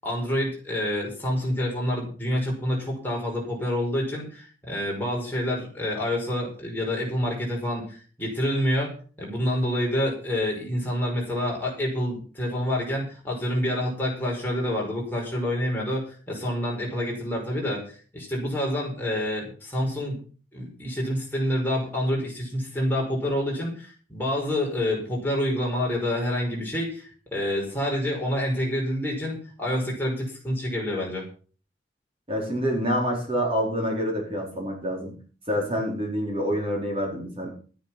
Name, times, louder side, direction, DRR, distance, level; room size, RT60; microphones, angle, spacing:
voice 1, 0.0-8.9 9.2-20.2 20.5-31.2, left 1 dB, 10° left, -2 dB, 5.6 m, -27 dB
voice 2, 32.3-35.1 35.5-37.5, equal, 30° right, 0 dB, 4.4 m, -27 dB
13.5 x 10.0 x 6.0 m, 0.40 s
head